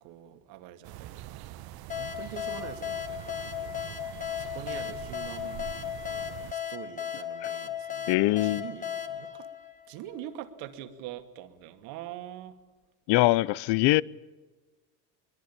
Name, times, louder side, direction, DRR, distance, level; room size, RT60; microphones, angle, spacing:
voice 1, 0.0-3.8 4.4-5.7 6.5-8.1 8.4-9.5 9.9-12.6, right 11 dB, 70° right, 2.5 m, -44 dB
sound 1, 0.8-6.5, right 14 dB, 50° right, 1.1 m, -44 dB
sound 2, 1.9-10.3, left 9 dB, 15° left, 2.0 m, -36 dB
voice 2, 8.1-8.6 13.1-14.0, left 18 dB, 55° left, 0.8 m, -23 dB
23.5 x 21.5 x 8.7 m
supercardioid pair, 110°, 47 cm